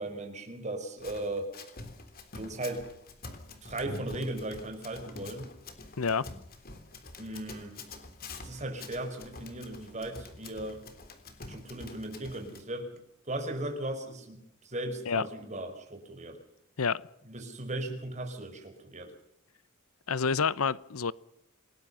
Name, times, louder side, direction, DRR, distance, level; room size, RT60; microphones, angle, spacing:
voice 1, 0.0-1.5 2.3-2.8 3.6-5.5 7.2-7.7 8.4-10.8 11.5-13.0 13.3-16.4 17.3-19.1, right 1 dB, 35° right, 5.3 m, -37 dB
Run, 1.0-12.6, left 3 dB, 45° left, 3.6 m, -46 dB
voice 2, 6.0-6.3 15.1-15.2 16.8-17.0 20.1-21.1, left 5 dB, 85° left, 0.8 m, -28 dB
28.0 x 20.5 x 5.7 m
head